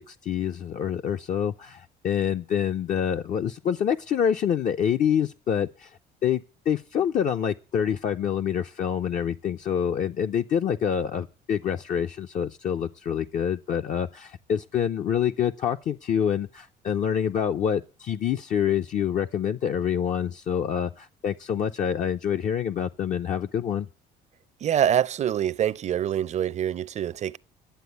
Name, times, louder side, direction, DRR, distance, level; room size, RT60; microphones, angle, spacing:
voice 1, 0.0-5.9 6.2-23.9, left 8 dB, 50° left, 0.6 m, -26 dB
voice 2, 24.6-27.4, right 10 dB, 45° right, 0.5 m, -25 dB
11.5 x 7.8 x 8.2 m
cardioid pair, 110°, 17 cm